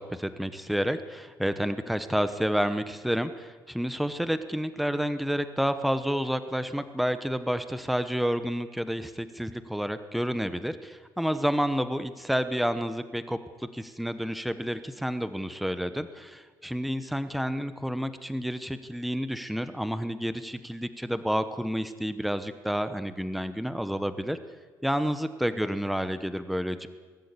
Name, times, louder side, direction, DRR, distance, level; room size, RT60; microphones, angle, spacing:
voice 1, 0.0-24.4 24.8-26.9, equal, ahead, 11 dB, 1.0 m, -30 dB
22.5 x 13.0 x 9.7 m, 1.4 s
cardioid pair, 140°, 7 cm